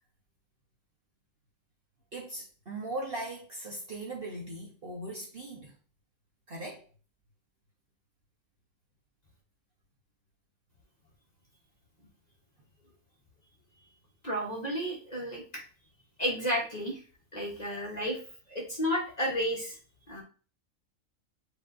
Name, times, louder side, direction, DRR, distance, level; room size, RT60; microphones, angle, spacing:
voice 1, 2.1-5.7 6.5-6.8, right 1 dB, 45° right, 0.9 m, -39 dB
voice 2, 14.2-15.6 16.2-17.0 17.3-18.2 18.5-19.8 20.1-20.2, equal, 30° left, 0.9 m, -32 dB
7.6 x 2.7 x 2.5 m
omnidirectional pair, 1.6 m